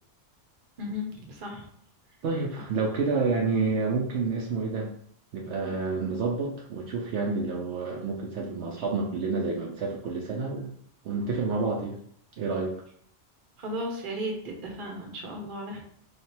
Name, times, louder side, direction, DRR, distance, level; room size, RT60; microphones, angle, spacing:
voice 1, 0.8-1.7 3.1-3.2 13.6-15.8, equal, 50° right, 1 dB, 0.9 m, -35 dB
voice 2, 2.2-4.9 5.3-10.7 11.0-12.0 12.4-12.7, right 4 dB, 70° right, -2 dB, 0.9 m, -29 dB
3.3 x 2.4 x 4.3 m, 0.65 s
omnidirectional pair, 1.2 m